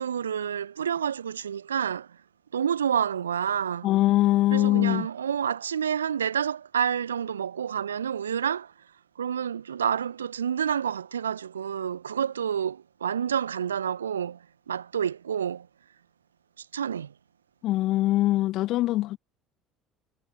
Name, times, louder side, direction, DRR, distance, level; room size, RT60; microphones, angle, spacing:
voice 1, 0.0-2.2 2.5-3.9 4.5-8.7 9.2-14.4 14.7-15.7 16.6-17.1, right 8 dB, 80° right, 0.7 m, -29 dB
voice 2, 3.8-5.1 17.6-19.2, left 16 dB, 55° left, 1.0 m, -22 dB
figure-of-eight pair, 60°, 0 cm